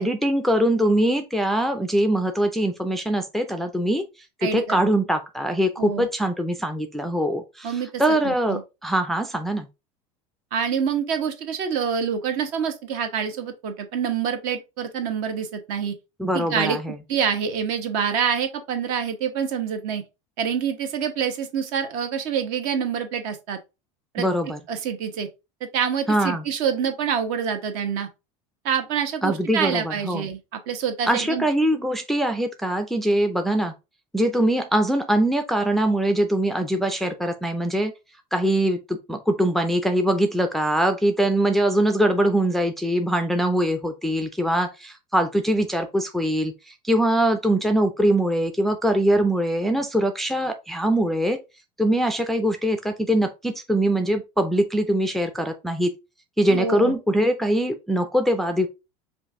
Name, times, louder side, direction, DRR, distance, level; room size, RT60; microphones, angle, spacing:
voice 1, 0.0-4.1 4.4-9.7 16.2-17.0 24.2-24.6 26.1-26.4 29.2-30.2 31.1-33.7 34.1-37.9 38.3-51.4 51.8-55.9 56.4-58.7, right 1 dB, ahead, 0.4 m, -22 dB
voice 2, 4.4-4.8 5.8-6.1 7.6-8.6 10.5-15.9 16.3-16.8 17.1-20.0 20.4-23.6 24.1-24.3 24.7-25.3 25.6-28.1 28.6-31.5 56.5-56.9, right 7 dB, 60° right, 1.1 m, -26 dB
5.2 x 2.6 x 3.6 m
supercardioid pair, 145°, 15 cm